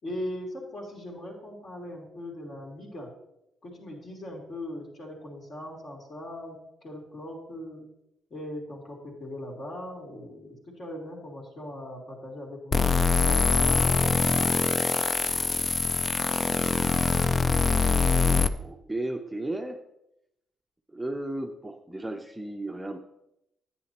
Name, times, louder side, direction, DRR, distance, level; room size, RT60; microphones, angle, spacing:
voice 1, 0.0-3.1 3.6-6.6 6.8-7.9 8.3-12.9 13.3-14.5, left 1 dB, 50° left, -1 dB, 3.3 m, -39 dB
sound 1, 12.7-18.5, left 4 dB, 30° left, 0.5 m, -23 dB
voice 2, 18.1-19.8 20.9-23.0, right 1 dB, 10° right, 3 dB, 0.7 m, -34 dB
10.5 x 8.8 x 3.0 m, 0.83 s
cardioid pair, 95°, 0 cm